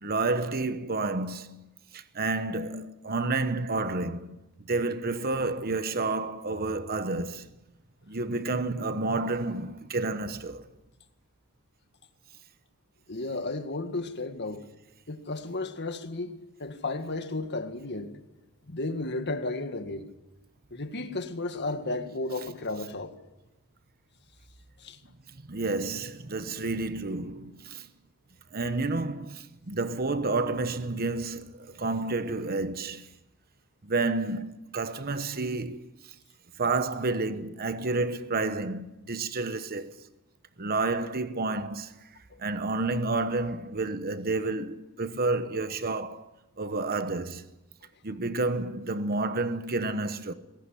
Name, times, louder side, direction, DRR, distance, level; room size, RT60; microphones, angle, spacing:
voice 1, 0.0-4.4 4.7-7.5 8.1-10.6 25.5-27.9 28.5-33.1 33.8-36.1 36.6-40.0 40.6-42.1 42.4-46.3 46.6-47.5 48.0-50.3, right 3 dB, 45° right, 1.1 m, -30 dB
voice 2, 13.1-14.7 15.1-18.2 18.7-20.1 20.7-23.1 24.8-25.0 42.3-42.4, left 2 dB, 50° left, 1.9 m, -33 dB
20.0 x 17.5 x 10.0 m
head